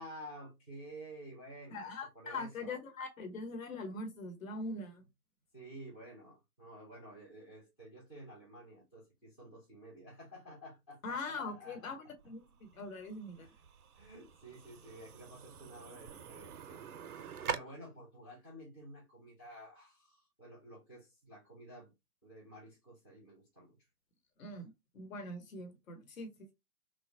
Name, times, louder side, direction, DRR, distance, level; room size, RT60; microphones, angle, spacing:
voice 1, 0.0-1.9 2.1-2.8 5.5-11.0 11.4-11.9 13.4-13.5 13.9-21.9 22.2-23.8, right 1 dB, 5° left, 0.4 m, -52 dB
voice 2, 1.7-5.0 11.0-13.5 24.4-26.5, left 2 dB, 60° left, 1.0 m, -42 dB
sound 1, 12.2-17.6, right 7 dB, 70° right, 0.5 m, -45 dB
3.2 x 2.0 x 2.6 m
figure-of-eight pair, 125°, 47 cm